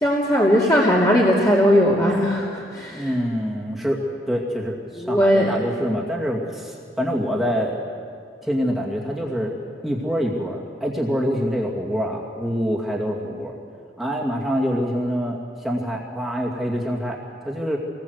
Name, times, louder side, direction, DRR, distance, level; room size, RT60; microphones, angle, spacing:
voice 1, 0.0-3.1 5.0-5.5, equal, 20° left, -5 dB, 2.6 m, -18 dB
voice 2, 2.9-4.0 4.3-7.8 8.4-9.6 9.8-13.6 14.0-17.8, equal, ahead, -3 dB, 2.3 m, -25 dB
27.0 x 20.0 x 8.1 m, 2.4 s
head